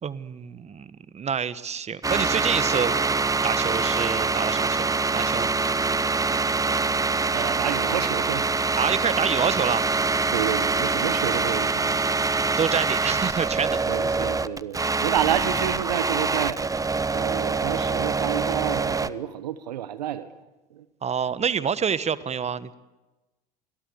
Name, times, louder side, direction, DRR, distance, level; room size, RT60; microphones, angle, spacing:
voice 1, 0.0-2.9 3.4-5.5 8.8-9.9 12.6-14.3 21.0-22.7, right 7 dB, 30° right, 15 dB, 1.3 m, -27 dB
sound 1, 2.0-19.1, right 4 dB, 15° right, 1.0 m, -24 dB
voice 2, 7.3-8.5 10.3-12.3 13.9-16.6 17.1-20.3 20.7-20.8, right 11 dB, 80° right, 14 dB, 1.1 m, -30 dB
29.0 x 22.5 x 8.2 m, 1.1 s
hypercardioid pair, 65°, 21 cm